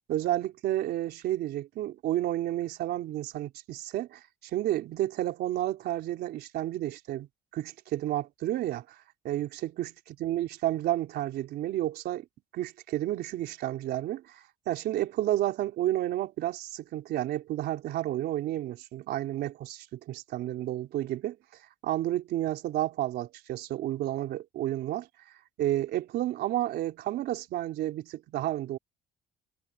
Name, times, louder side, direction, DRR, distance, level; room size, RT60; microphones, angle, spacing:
voice 1, 0.1-7.3 7.5-9.0 9.2-9.9 10.2-12.2 12.5-21.4 21.8-25.1 25.6-28.8, right 14 dB, 75° right, 3.9 m, -31 dB
cardioid pair, 110°, 17 cm